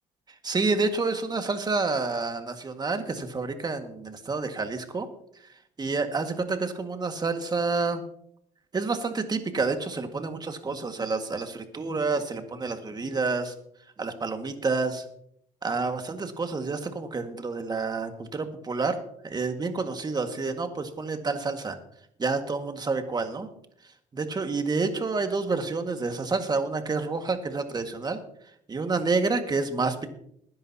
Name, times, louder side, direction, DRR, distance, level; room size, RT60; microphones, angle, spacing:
voice 1, 0.4-5.1 5.8-8.0 8.7-13.5 14.0-15.0 15.6-21.8 22.2-23.5 24.1-28.2 28.7-30.1, right 4 dB, 25° right, 6 dB, 1.8 m, -29 dB
20.0 x 10.5 x 2.9 m, 0.69 s
cardioid pair, 95°, 15 cm